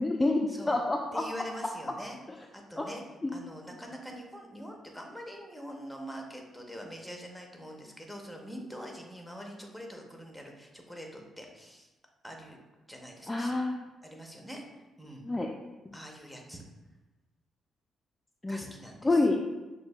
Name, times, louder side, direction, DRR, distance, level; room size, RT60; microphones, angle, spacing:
voice 1, 0.0-1.2 2.8-3.3 13.3-13.8 15.2-15.5 18.4-18.6 19.0-19.4, left 2 dB, 15° left, 1 dB, 0.3 m, -28 dB
voice 2, 1.1-2.2 2.7-3.0 3.3-11.9 12.2-12.6 12.9-13.5 14.0-14.6 15.0-15.3 15.9-16.6 18.5-19.3, equal, ahead, 1 dB, 0.7 m, -44 dB
6.0 x 2.7 x 2.3 m, 1.1 s
cardioid pair, 90°, 0 cm